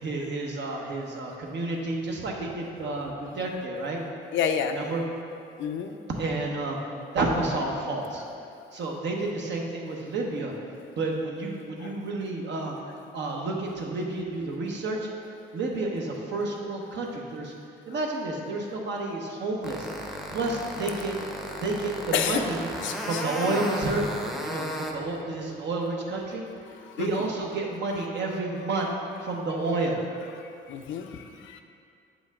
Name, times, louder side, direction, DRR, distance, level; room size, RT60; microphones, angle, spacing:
voice 1, 0.0-4.0 4.8-5.0 5.9-6.8 7.1-8.2 8.7-10.5 10.9-12.8 13.1-15.1 15.5-17.5 17.9-21.1 21.6-22.6 23.0-26.4 26.7-28.9 29.2-30.0, right 2 dB, 65° right, 0 dB, 1.1 m, -30 dB
voice 2, 4.3-4.8 5.6-6.0 11.8-11.9 22.1-22.4 22.8-23.2 23.5-23.7 26.7-27.3 30.4-31.6, left 8 dB, 75° left, 6 dB, 0.5 m, -30 dB
sound 1, 19.6-24.9, equal, ahead, 0.7 m, -35 dB
7.3 x 5.2 x 3.6 m, 2.4 s
cardioid pair, 90°, 20 cm